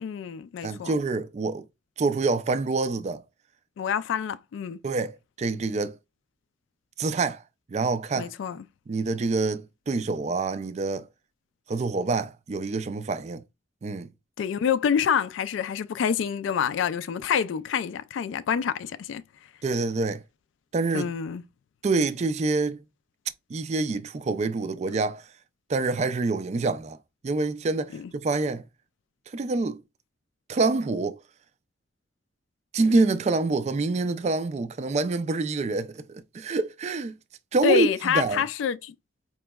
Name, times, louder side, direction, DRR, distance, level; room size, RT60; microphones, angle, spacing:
voice 1, 0.0-0.9 3.8-4.8 8.2-8.6 14.4-19.2 20.9-21.4 27.9-28.1 37.6-38.9, left 7 dB, 85° left, 0.3 m, -27 dB
voice 2, 0.6-1.7 2.0-3.2 4.8-6.0 7.0-7.4 7.7-8.3 8.9-11.1 11.7-13.4 13.8-14.1 19.6-20.2 20.7-21.1 21.8-22.8 23.5-25.3 25.7-27.0 27.2-28.6 29.3-29.8 30.5-31.2 32.7-37.1 37.5-38.4, right 3 dB, 35° right, 0.3 m, -26 dB
4.4 x 2.9 x 2.2 m
head